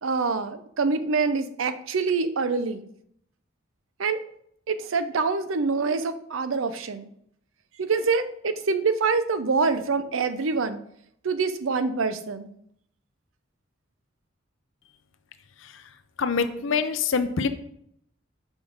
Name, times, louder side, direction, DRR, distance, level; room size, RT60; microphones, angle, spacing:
voice 1, 0.0-2.8 4.0-4.2 4.7-7.1 7.8-10.8 11.2-12.5, right 4 dB, 80° right, 11 dB, 0.6 m, -25 dB
voice 2, 16.2-17.5, left 5 dB, 70° left, 10 dB, 0.6 m, -24 dB
6.1 x 5.2 x 5.1 m, 0.71 s
head